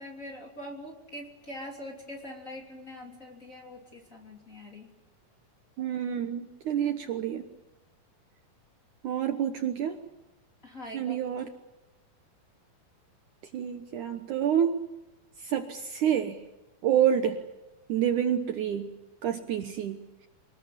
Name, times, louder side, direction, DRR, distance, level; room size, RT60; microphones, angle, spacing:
voice 1, 0.0-4.9 10.6-11.2, left 1 dB, 20° left, 1 dB, 3.0 m, -43 dB
voice 2, 5.8-7.4 9.0-10.0 10.9-11.5 13.5-14.9 15.4-16.4 16.8-17.4 17.9-18.9 19.2-20.0, right 9 dB, 65° right, 7 dB, 2.3 m, -28 dB
26.5 x 19.5 x 8.7 m, 1.0 s
omnidirectional pair, 4.3 m